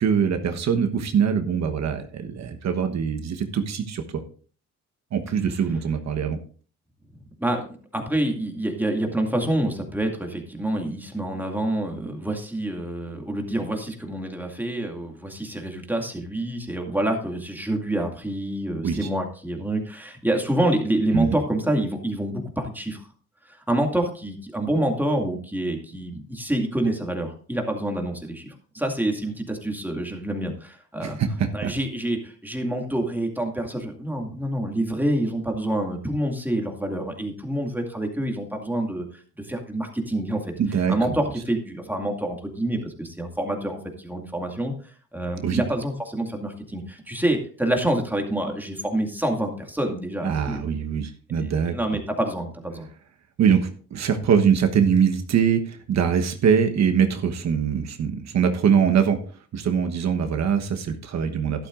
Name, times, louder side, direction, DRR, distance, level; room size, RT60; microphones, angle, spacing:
voice 1, 0.0-4.0 5.1-6.4 18.8-19.1 21.1-21.3 31.0-31.7 40.6-40.9 45.4-45.6 50.2-51.8 53.4-59.2 59.5-61.7, right 7 dB, 60° right, 6 dB, 1.2 m, -23 dB
voice 2, 7.4-23.1 23.4-31.2 31.5-40.5 40.9-50.8 51.7-52.9, right 1 dB, 5° right, 2 dB, 2.3 m, -27 dB
12.0 x 11.5 x 2.5 m, 0.42 s
cardioid pair, 90°, 30 cm